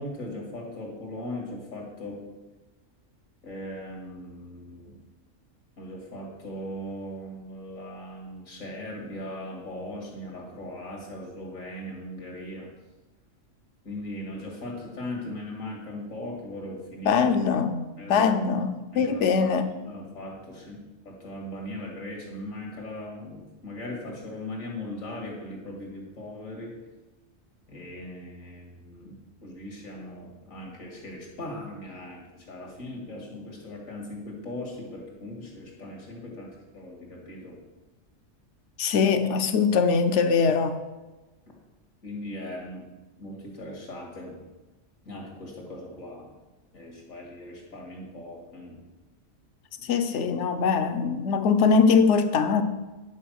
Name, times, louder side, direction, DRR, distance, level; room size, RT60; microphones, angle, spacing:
voice 1, 0.0-2.2 3.4-5.0 5.8-12.8 13.8-17.3 18.0-18.3 18.9-19.5 19.8-26.8 27.7-37.6 42.0-42.9 43.2-44.4 45.1-46.3 46.7-48.8 49.8-49.9, left 1 dB, 90° left, -1 dB, 2.5 m, -39 dB
voice 2, 17.0-17.8 18.1-19.7 38.8-40.8 49.8-52.6, left 5 dB, 65° left, 9 dB, 1.0 m, -22 dB
10.0 x 4.7 x 6.3 m, 1.1 s
omnidirectional pair, 1.4 m